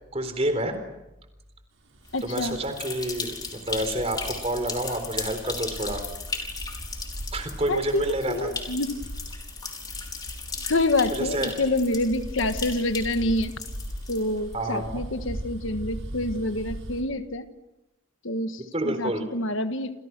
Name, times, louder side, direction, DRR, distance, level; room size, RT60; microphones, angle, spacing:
voice 1, 0.1-0.8 2.2-3.4 3.7-6.0 7.3-8.5 11.1-11.6 14.5-15.0 18.6-19.2, right 1 dB, 30° right, 8 dB, 3.9 m, -28 dB
Bus, 1.9-17.0, equal, 75° right, 6.2 m, -40 dB
voice 2, 2.1-2.6 7.7-9.0 10.6-13.5 14.1-17.5 18.2-19.9, left 2 dB, 75° left, 9 dB, 1.6 m, -27 dB
sound 1, 2.1-14.5, left 4 dB, 20° left, 4.2 m, -37 dB
30.0 x 28.5 x 6.1 m, 0.93 s
head